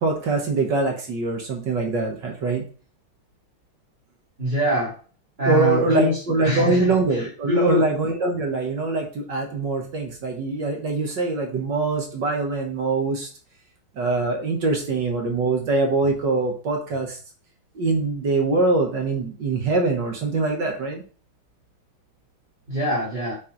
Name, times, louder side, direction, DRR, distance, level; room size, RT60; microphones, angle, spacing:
voice 1, 0.0-2.6 5.4-13.3 14.0-17.2 17.7-21.0, right 3 dB, 60° right, 1 dB, 1.7 m, -23 dB
voice 2, 4.4-4.9 5.4-7.9 22.7-23.4, left 1 dB, 20° right, -8 dB, 3.1 m, -24 dB
8.0 x 4.4 x 3.9 m, 0.41 s
omnidirectional pair, 2.4 m